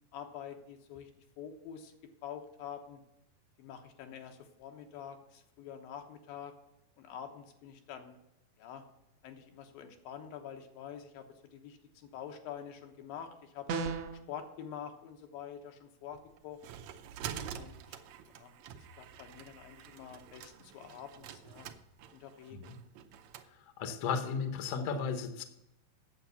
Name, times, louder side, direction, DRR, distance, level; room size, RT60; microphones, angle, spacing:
voice 1, 0.1-1.1 1.4-1.9 2.2-3.0 3.6-6.5 7.0-8.2 8.6-8.8 9.2-11.3 11.5-13.7 14.3-16.6 17.5-17.8 18.4-21.7 22.1-22.7, left 8 dB, 85° left, 5 dB, 2.8 m, -46 dB
sound 1, 13.7-14.2, right 4 dB, 70° right, 1.6 m, -34 dB
sound 2, 16.1-23.5, right 9 dB, 90° right, 1.5 m, -47 dB
voice 2, 23.8-25.4, left 6 dB, 65° left, 8 dB, 1.5 m, -34 dB
8.9 x 7.4 x 6.9 m, 0.85 s
omnidirectional pair, 4.0 m